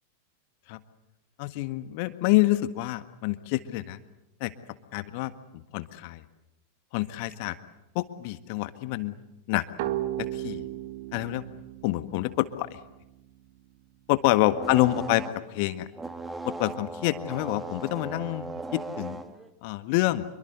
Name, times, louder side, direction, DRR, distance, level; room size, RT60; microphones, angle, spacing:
voice 1, 1.4-4.0 4.4-4.5 4.9-6.2 6.9-7.6 7.9-9.1 9.5-9.6 10.2-10.7 11.1-11.4 11.8-12.8 14.1-15.2 15.5-15.9 16.4-19.2 19.6-20.2, left 18 dB, 45° left, 12 dB, 1.6 m, -27 dB
sound 1, 9.8-13.3, right 14 dB, 50° right, 1.8 m, -35 dB
sound 2, 14.5-15.6 15.9-19.5, right 3 dB, 10° right, 2.0 m, -37 dB
27.5 x 23.5 x 8.0 m, 0.90 s
figure-of-eight pair, 90°, 0 cm